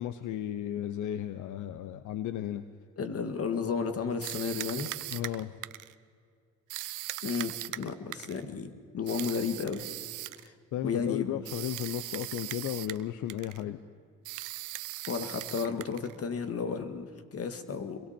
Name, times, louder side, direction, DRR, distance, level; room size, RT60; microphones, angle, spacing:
voice 1, 0.0-2.6 5.1-5.5 10.7-13.8, left 11 dB, 80° left, 12 dB, 0.8 m, -34 dB
voice 2, 3.0-4.9 7.2-9.8 10.4-10.5 10.8-11.4 15.1-18.0, left 5 dB, 50° left, 8 dB, 2.0 m, -33 dB
sound 1, 4.2-5.9 6.7-8.4 9.1-10.5 11.4-13.0 13.3-13.6 14.2-16.2, right 16 dB, 85° right, 0.7 m, -39 dB
28.0 x 23.0 x 4.5 m, 2.1 s
cardioid pair, 90°, 30 cm